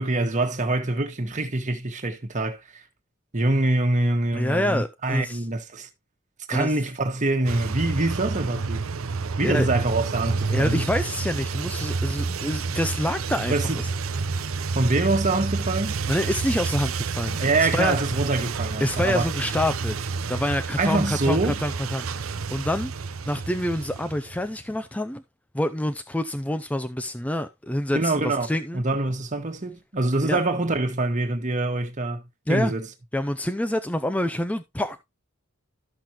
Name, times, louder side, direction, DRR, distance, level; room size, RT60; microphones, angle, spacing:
voice 1, 0.0-2.8 3.3-5.9 6.5-8.8 9.4-10.8 13.5-13.8 14.7-16.0 17.4-19.3 20.8-21.6 27.9-28.5 28.7-32.2 32.5-32.9, right 2 dB, 35° right, 1.5 m, -25 dB
voice 2, 4.3-5.4 6.5-6.7 9.4-9.7 10.5-13.9 16.1-17.4 17.7-18.0 18.8-22.9 23.3-25.2 25.5-28.8 30.2-30.4 32.5-32.7 33.1-35.0, left 1 dB, 5° left, 0.5 m, -27 dB
sound 1, 7.5-24.5, right 4 dB, 85° right, 0.7 m, -29 dB
13.5 x 5.9 x 3.0 m
head